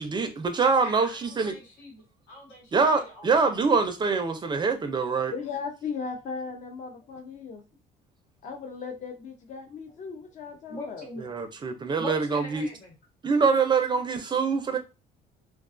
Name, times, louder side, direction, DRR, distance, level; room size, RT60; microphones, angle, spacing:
voice 1, 0.0-1.5 2.7-5.3 11.2-12.7 13.2-14.8, right 4 dB, 25° right, 0.4 m, -24 dB
voice 2, 0.8-3.6 10.7-11.3 11.9-12.9, left 1 dB, 90° left, 1.4 m, -42 dB
voice 3, 5.3-7.6 8.4-11.1, left 5 dB, 45° left, 0.5 m, -37 dB
2.3 x 2.2 x 2.4 m
cardioid pair, 110°, 17 cm